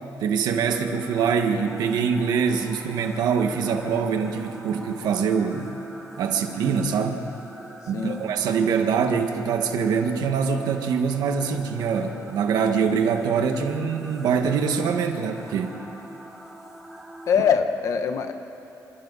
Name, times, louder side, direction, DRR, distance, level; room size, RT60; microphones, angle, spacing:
voice 1, 0.2-5.7 6.2-7.2 7.9-15.8, right 6 dB, 80° right, 5 dB, 1.8 m, -24 dB
sound 1, 0.6-17.5, right 1 dB, 5° right, 1.3 m, -44 dB
voice 2, 7.9-8.2 17.3-18.3, left 7 dB, 50° left, 8 dB, 1.2 m, -22 dB
27.5 x 27.0 x 4.2 m, 3.0 s
cardioid pair, 180°, 7 cm